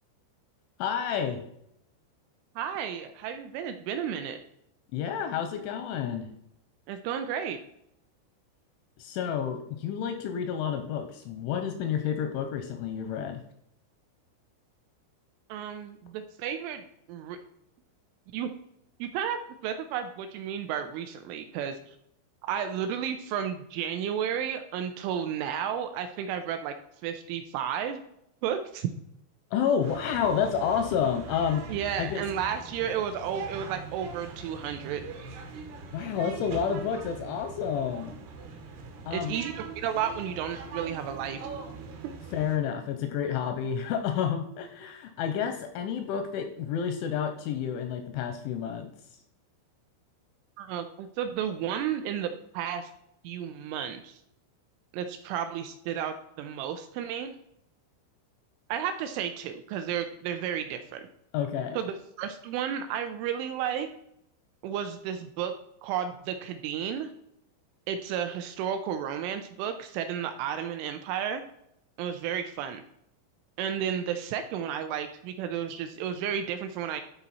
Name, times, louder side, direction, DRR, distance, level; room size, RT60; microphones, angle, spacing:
voice 1, 0.8-1.4 4.9-6.3 9.0-13.4 29.5-31.6 32.0-32.2 35.9-38.2 39.1-39.3 42.3-48.9 61.3-61.8, left 8 dB, 85° left, 7 dB, 2.8 m, -30 dB
voice 2, 2.6-4.4 6.9-7.6 15.5-16.8 17.1-17.4 18.3-18.5 19.0-21.8 22.4-26.7 27.0-28.0 28.4-28.9 31.7-35.0 39.1-41.4 50.6-52.9 53.2-54.2 54.9-57.3 58.7-61.0 61.8-63.9 64.6-65.5 65.8-67.1 67.9-71.4 72.0-72.8 73.6-77.0, right 9 dB, 85° right, 8 dB, 2.9 m, -32 dB
sound 1, 29.8-42.6, right 4 dB, 70° right, 2.8 m, -42 dB
12.0 x 4.3 x 4.1 m, 0.76 s
omnidirectional pair, 5.9 m